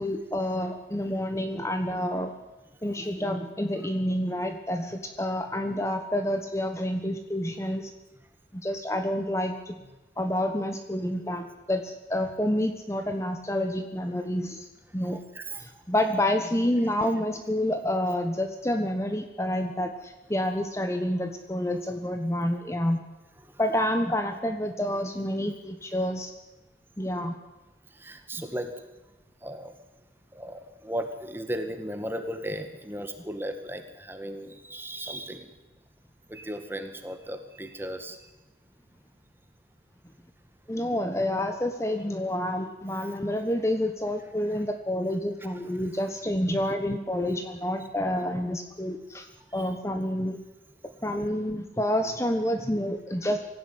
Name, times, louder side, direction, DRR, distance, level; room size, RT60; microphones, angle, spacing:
voice 1, 0.0-2.3 2.8-7.9 8.5-9.8 10.2-14.7 14.9-15.2 15.6-23.0 23.6-26.3 27.0-27.4 40.7-49.3 49.5-50.4 51.0-53.4, left 1 dB, 15° left, 7 dB, 1.2 m, -28 dB
voice 2, 15.1-15.6 28.0-28.7 29.4-29.7 30.3-35.5 36.3-38.2 43.0-43.1 44.5-44.6 45.4-45.5 46.5-46.6 49.5-49.8, right 1 dB, 10° right, 7 dB, 2.0 m, -36 dB
25.0 x 16.0 x 9.7 m, 1.1 s
head